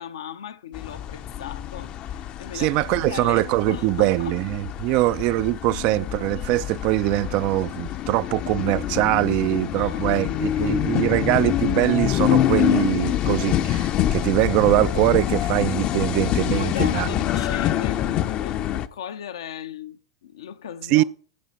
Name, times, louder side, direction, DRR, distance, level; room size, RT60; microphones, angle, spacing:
voice 1, 0.0-4.4 4.8-5.1 9.7-10.2 10.6-11.1 16.6-21.0, left 9 dB, 80° left, 0.8 m, -37 dB
sound 1, 0.7-18.9, left 12 dB, 40° left, 0.6 m, -26 dB
voice 2, 2.5-17.1 20.9-21.0, right 18 dB, 50° right, 0.3 m, -22 dB
15.0 x 5.5 x 4.3 m
hypercardioid pair, 95°, 3 cm